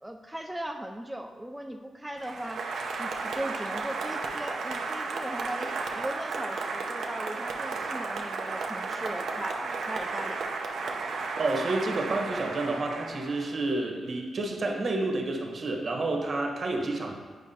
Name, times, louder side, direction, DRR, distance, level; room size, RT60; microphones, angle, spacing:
voice 1, 0.0-2.7 3.0-10.4, right 1 dB, 5° right, 2 dB, 0.3 m, -38 dB
Applause, 2.2-13.7, right 4 dB, 75° right, 0.7 m, -34 dB
voice 2, 11.4-17.1, right 2 dB, 55° right, 0 dB, 1.1 m, -29 dB
9.3 x 4.7 x 2.8 m, 1.5 s
cardioid pair, 70°, 0 cm